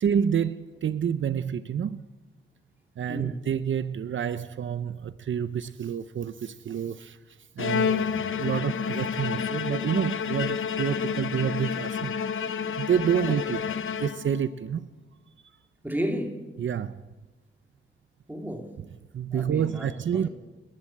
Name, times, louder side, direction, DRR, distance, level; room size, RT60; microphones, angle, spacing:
voice 1, 0.0-2.0 3.0-12.2 12.8-13.6 14.0-14.9 16.6-17.0 19.1-20.3, right 8 dB, 70° right, 0.7 m, -28 dB
voice 2, 3.1-3.4 15.8-16.4 18.3-18.8 19.3-20.3, equal, 10° right, 2.8 m, -33 dB
Bowed string instrument, 7.6-14.5, left 7 dB, 80° left, 1.1 m, -29 dB
30.0 x 11.0 x 8.6 m
wide cardioid pair, 120°, 21 cm